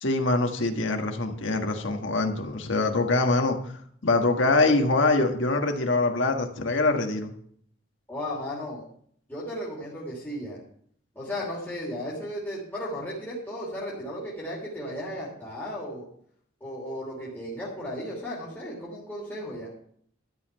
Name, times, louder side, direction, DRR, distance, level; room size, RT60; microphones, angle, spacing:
voice 1, 0.0-3.6 4.0-7.3, left 2 dB, 80° left, 4 dB, 1.6 m, -24 dB
voice 2, 8.1-8.8 9.3-10.6 11.1-16.1 16.6-19.7, equal, 10° left, -6 dB, 3.1 m, -35 dB
12.5 x 5.6 x 8.8 m, 0.63 s
head